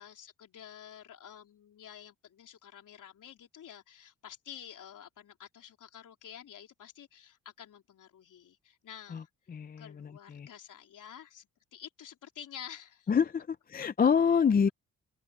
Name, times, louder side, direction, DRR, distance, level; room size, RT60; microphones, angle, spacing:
voice 1, 0.0-9.3 9.8-13.1 13.8-14.1, left 9 dB, 65° left, 3.8 m, -50 dB
voice 2, 9.5-10.5 13.1-14.7, left 6 dB, 25° left, 0.5 m, -27 dB
open air
cardioid pair, 105°, 33 cm